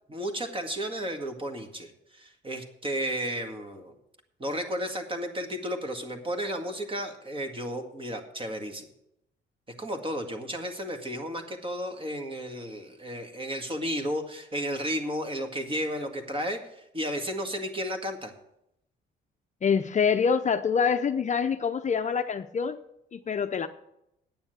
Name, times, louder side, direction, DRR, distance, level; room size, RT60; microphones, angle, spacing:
voice 1, 0.1-3.9 4.4-8.9 9.8-16.6 16.9-18.3, equal, 25° right, 1.8 m, -33 dB
voice 2, 19.6-22.8 23.1-23.7, left 6 dB, 35° left, 0.6 m, -25 dB
9.2 x 7.1 x 8.1 m
cardioid pair, 90°, 20 cm